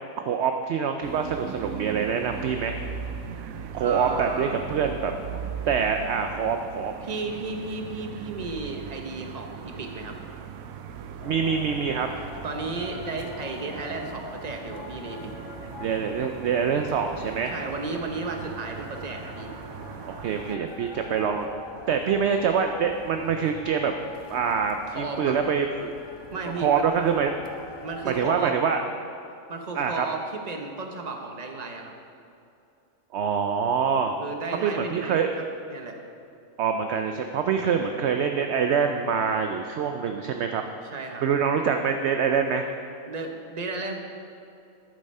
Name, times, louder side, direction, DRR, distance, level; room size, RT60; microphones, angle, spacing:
voice 1, 0.2-2.8 3.7-5.1 5.7-6.9 11.2-12.1 15.8-17.5 20.0-21.5 21.9-23.9 24.3-25.9 26.6-27.3 28.0-28.8 29.7-30.1 33.1-34.1 34.6-35.3 36.6-40.6 41.2-42.7, right 6 dB, 65° right, 5 dB, 0.8 m, -25 dB
sound 1, 1.0-20.6, right 8 dB, 80° right, 1.0 m, -39 dB
voice 2, 3.8-4.5 7.0-10.2 12.4-15.3 17.5-19.5 24.9-25.4 26.3-26.9 27.8-28.6 29.5-31.9 34.2-36.0 37.8-37.9 40.8-41.2 43.1-44.0, right 3 dB, 30° right, 3 dB, 1.0 m, -34 dB
sound 2, 11.2-28.3, left 3 dB, 25° left, 0.6 m, -44 dB
11.0 x 8.8 x 5.4 m, 2.6 s
omnidirectional pair, 1.4 m